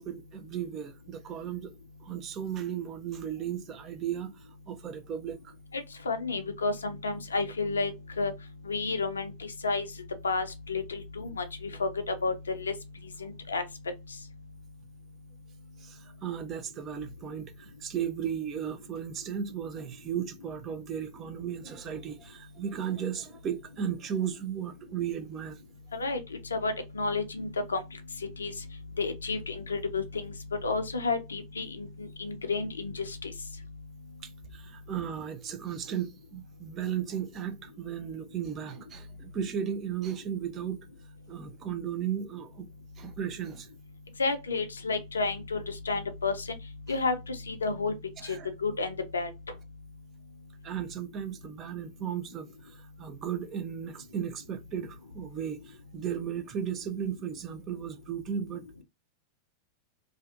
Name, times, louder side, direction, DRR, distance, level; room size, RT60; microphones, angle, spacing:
voice 1, 0.0-1.7 2.0-4.3 4.7-5.5 15.8-25.6 34.2-40.8 41.3-42.7 43.0-43.7 48.2-48.5 50.6-58.8, right 8 dB, 30° right, 0.5 m, -35 dB
voice 2, 5.7-8.3 8.6-9.9 10.2-12.7 13.2-13.6 25.9-26.2 26.5-27.8 28.4-28.5 29.0-30.3 30.6-33.3 44.2-46.6 46.9-47.9 48.2-48.4 48.6-49.3, left 3 dB, 75° left, 0.5 m, -31 dB
2.5 x 2.3 x 2.4 m
figure-of-eight pair, 90°, 0 cm